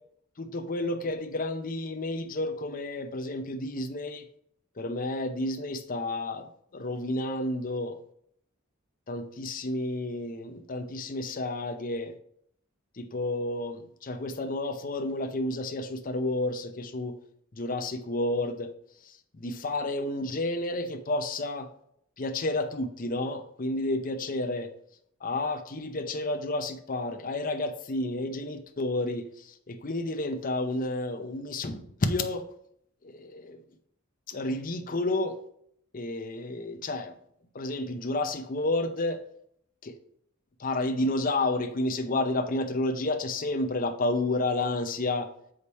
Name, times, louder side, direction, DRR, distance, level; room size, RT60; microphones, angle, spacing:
voice 1, 0.4-4.3 4.8-8.0 9.1-12.1 13.0-17.2 17.5-18.7 19.0-21.7 22.2-24.7 25.2-32.4 33.0-33.6 34.3-35.4 35.9-37.1 37.5-39.2 39.8-40.0 40.6-45.3, left 2 dB, 45° left, 6 dB, 0.7 m, -31 dB
6.9 x 5.1 x 4.2 m, 0.67 s
head